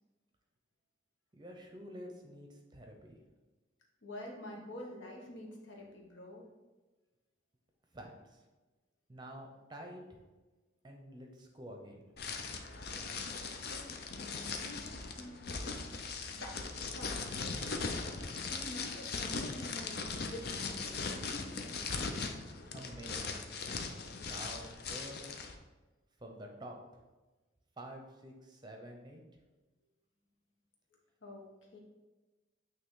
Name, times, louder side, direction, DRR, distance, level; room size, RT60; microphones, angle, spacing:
voice 1, 1.3-3.2 7.9-8.4 9.1-10.2 10.8-12.0 22.7-23.5 24.2-25.4 26.2-27.0 27.8-29.2, right 1 dB, 20° right, 2 dB, 0.7 m, -49 dB
voice 2, 4.0-6.5 13.4-15.8 16.3-16.6 16.9-17.1 18.5-21.9 31.2-31.4 31.7-31.8, left 1 dB, 70° left, -1 dB, 1.3 m, -48 dB
sound 1, 12.2-25.5, left 4 dB, 50° left, 0.6 m, -39 dB
8.6 x 3.0 x 3.8 m, 1.2 s
head